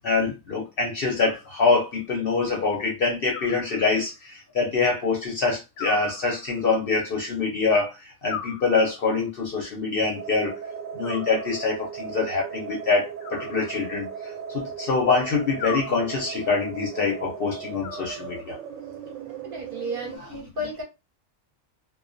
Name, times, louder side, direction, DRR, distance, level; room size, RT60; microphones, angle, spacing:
voice 1, 0.0-10.5 10.9-18.5 20.2-20.3, left 4 dB, 60° left, 0.6 m, -25 dB
Animal, 1.2-2.0 3.3-4.3 5.8-6.8 8.3-9.3 11.0-11.9 13.2-14.3 15.6-16.5 17.8-18.7, left 7 dB, 85° left, 1.0 m, -40 dB
sound 1, 10.1-20.2, right 7 dB, 80° right, 1.0 m, -37 dB
voice 2, 19.5-20.8, equal, 50° right, 0.8 m, -33 dB
2.2 x 2.2 x 2.5 m
omnidirectional pair, 1.4 m